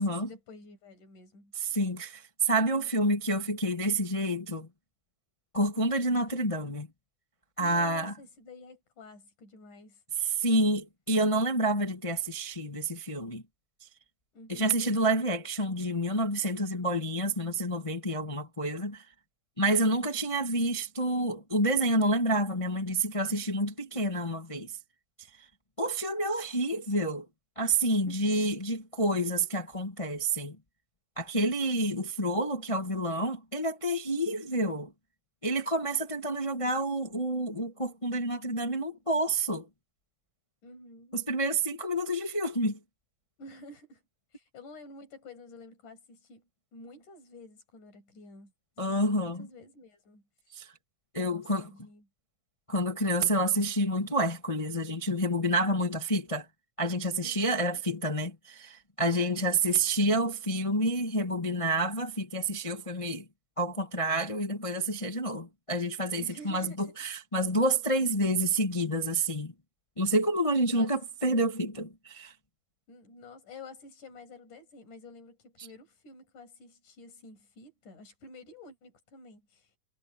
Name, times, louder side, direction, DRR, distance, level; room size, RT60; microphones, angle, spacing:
voice 1, 0.0-1.8 7.6-10.0 14.3-14.8 19.8-20.2 28.1-28.2 40.6-41.2 43.4-44.0 44.3-48.5 48.8-50.2 51.3-52.1 57.2-57.8 59.6-59.8 66.2-66.9 70.7-71.0 72.9-79.8, left 2 dB, 65° left, 8.3 m, -50 dB
voice 2, 1.5-4.7 5.5-6.9 7.6-8.1 10.2-13.4 14.5-19.0 19.6-24.7 25.8-27.2 27.6-30.5 31.2-34.9 35.4-39.7 41.1-42.8 48.8-49.5 50.5-50.7 51.1-51.7 52.7-56.4 56.8-63.3 63.6-69.5 70.0-72.3, right 1 dB, 20° left, 0.7 m, -28 dB
omnidirectional pair, 3.8 m